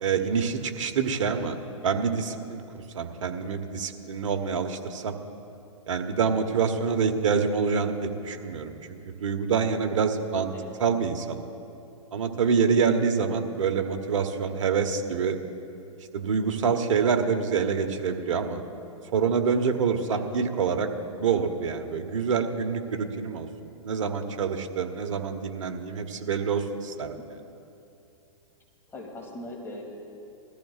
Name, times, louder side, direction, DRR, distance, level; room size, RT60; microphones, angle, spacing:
voice 1, 0.0-1.5 1.8-2.6 2.9-5.2 5.9-10.5 10.8-11.4 12.1-15.4 16.1-18.6 19.1-20.9 21.2-27.2, right 6 dB, 70° right, 6 dB, 1.1 m, -26 dB
voice 2, 28.9-29.8, left 2 dB, 15° left, -1 dB, 2.5 m, -40 dB
20.5 x 14.0 x 2.4 m, 2.7 s
hypercardioid pair, 125°, 17 cm